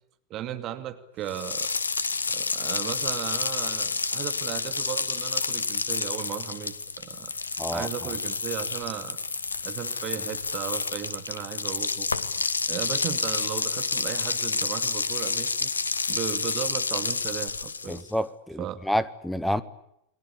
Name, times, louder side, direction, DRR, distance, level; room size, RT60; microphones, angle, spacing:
voice 1, 0.3-1.7 2.3-7.3 7.7-9.2 9.6-12.1 12.7-15.7 16.1-18.0 18.6-18.8, right 11 dB, 35° right, 9 dB, 2.5 m, -36 dB
sound 1, 1.3-18.1, left 4 dB, 75° left, 1.5 m, -29 dB
voice 2, 7.6-7.9 17.9-19.6, equal, 5° left, 16 dB, 1.7 m, -28 dB
30.0 x 22.0 x 8.6 m, 0.76 s
figure-of-eight pair, 90°, 0 cm